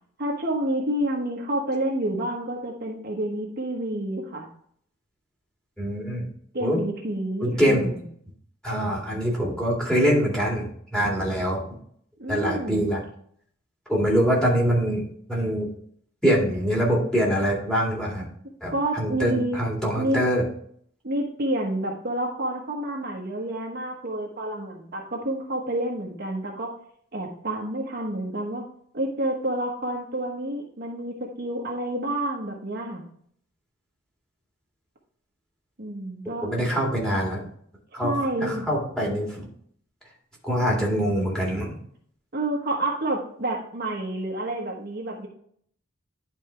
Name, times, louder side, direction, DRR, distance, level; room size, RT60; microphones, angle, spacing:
voice 1, 0.2-4.5 6.5-8.0 12.2-12.9 18.7-19.6 20.0-20.2 21.0-26.7 27.1-28.6 28.9-33.0 35.8-36.5 38.0-38.6 42.3-45.3, right 1 dB, 50° right, -1 dB, 1.3 m, -29 dB
voice 2, 5.8-6.3 6.6-6.8 7.4-7.9 8.6-11.6 12.3-13.0 13.9-15.0 15.3-15.7 16.2-18.3 18.6-20.4 36.4-37.4 37.9-38.1 38.4-39.5 40.4-41.7, equal, 5° left, -4 dB, 2.2 m, -24 dB
10.5 x 4.5 x 3.3 m, 0.63 s
head